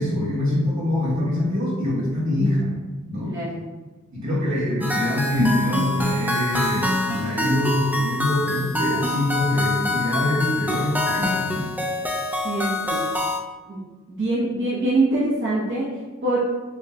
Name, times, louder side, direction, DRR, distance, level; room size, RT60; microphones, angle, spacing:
voice 1, 0.0-2.8 3.1-3.4 4.1-11.7, left 1 dB, 70° right, -7 dB, 1.4 m, -24 dB
voice 2, 3.2-3.6 12.4-13.1 13.7-13.8 14.1-16.4, right 2 dB, 40° right, -7 dB, 0.8 m, -24 dB
sound 1, 4.8-13.4, left 2 dB, 5° right, 0.4 m, -25 dB
6.4 x 2.1 x 2.7 m, 1.2 s
wide cardioid pair, 105°, 29 cm